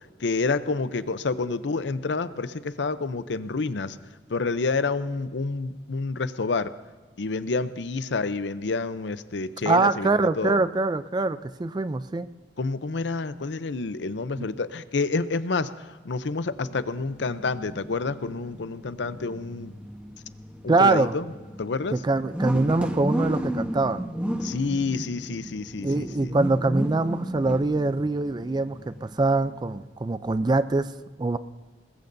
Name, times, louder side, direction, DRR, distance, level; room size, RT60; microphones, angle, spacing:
voice 1, 0.2-4.0 4.3-6.7 7.2-10.6 12.6-15.7 16.0-19.7 20.6-21.2 21.6-22.0 24.4-26.4, left 3 dB, 80° left, 13 dB, 0.6 m, -28 dB
voice 2, 9.7-12.3 14.4-14.5 20.7-21.1 21.9-24.1 25.8-30.9 31.2-31.4, right 3 dB, 25° right, 14 dB, 0.4 m, -24 dB
sound 1, 16.5-29.8, equal, 5° right, 1.0 m, -35 dB
21.0 x 20.5 x 2.7 m, 1.3 s
head